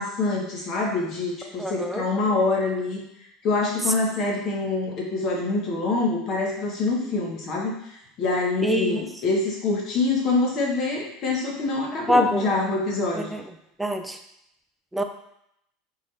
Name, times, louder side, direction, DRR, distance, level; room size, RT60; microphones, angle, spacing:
voice 1, 0.0-3.0 3.4-13.3, left 3 dB, 40° left, -1 dB, 1.2 m, -25 dB
voice 2, 1.6-2.0 8.6-9.0 12.1-12.5 13.3-13.4 13.8-14.2 14.9-15.0, equal, 5° right, 6 dB, 0.3 m, -24 dB
3.8 x 3.7 x 3.3 m, 0.77 s
supercardioid pair, 150°, 0 cm